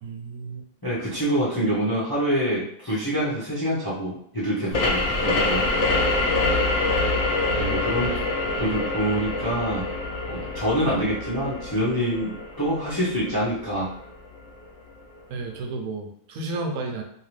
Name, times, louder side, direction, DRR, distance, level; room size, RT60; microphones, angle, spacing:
voice 1, 0.0-0.7 7.5-7.8 15.3-17.0, right 3 dB, 75° right, 3 dB, 1.0 m, -32 dB
voice 2, 0.8-5.6 7.6-8.1 8.6-9.9 10.3-13.9, equal, 25° left, -7 dB, 0.5 m, -26 dB
sound 1, 4.7-14.1, left 2 dB, 55° left, 0.9 m, -25 dB
3.0 x 2.8 x 3.1 m, 0.66 s
omnidirectional pair, 1.7 m